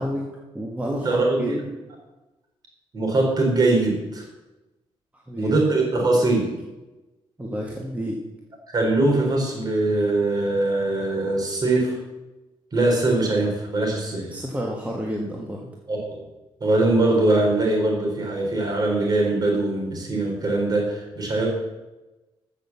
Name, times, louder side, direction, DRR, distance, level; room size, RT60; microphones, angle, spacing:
voice 1, 0.0-1.5 5.3-5.5 6.0-6.3 7.4-8.2 14.3-15.7, equal, 15° right, -1 dB, 1.6 m, -30 dB
voice 2, 0.8-1.6 2.9-4.2 5.4-6.5 8.7-12.0 12.7-14.3 15.9-16.2 16.6-21.5, right 2 dB, 40° right, 0 dB, 4.3 m, -22 dB
13.5 x 6.6 x 7.3 m, 1.1 s
cardioid pair, 125°, 10 cm